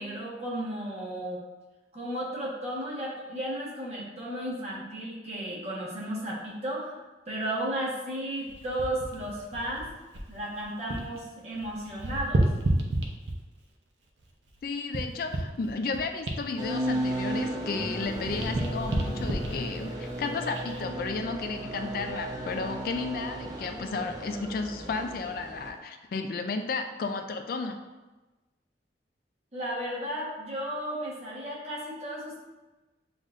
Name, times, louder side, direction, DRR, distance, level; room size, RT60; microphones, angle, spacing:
voice 1, 0.0-1.4 1.9-9.9 10.3-12.5 29.5-32.4, right 1 dB, 35° right, -6 dB, 1.2 m, -34 dB
sound 1, 8.5-11.2 11.5-13.6 14.2-17.7 18.0-20.8 21.4-21.6, right 1 dB, 90° right, 0.7 m, -32 dB
voice 2, 14.6-27.8, left 4 dB, 55° left, 6 dB, 0.3 m, -33 dB
sound 2, 16.6-25.7, right 1 dB, 20° right, 0.7 m, -35 dB
7.2 x 2.6 x 2.5 m, 1.1 s
head